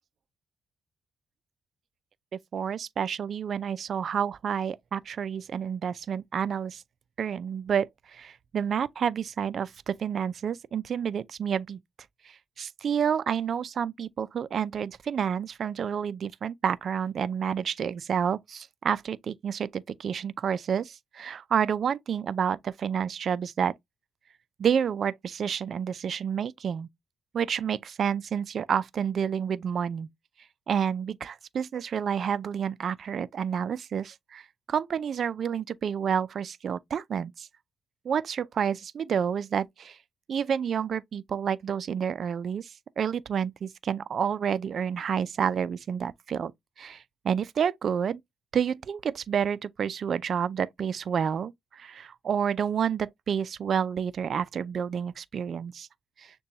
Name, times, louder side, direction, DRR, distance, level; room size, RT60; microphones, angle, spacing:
voice 1, 2.5-6.8 7.2-11.8 12.3-23.7 24.6-26.9 27.3-30.1 30.7-34.4 34.7-37.5 38.0-40.0 40.3-46.5 46.8-48.2 48.5-55.9, right 7 dB, 55° right, 0.4 m, -29 dB
6.7 x 2.3 x 2.7 m
cardioid pair, 90°, 0 cm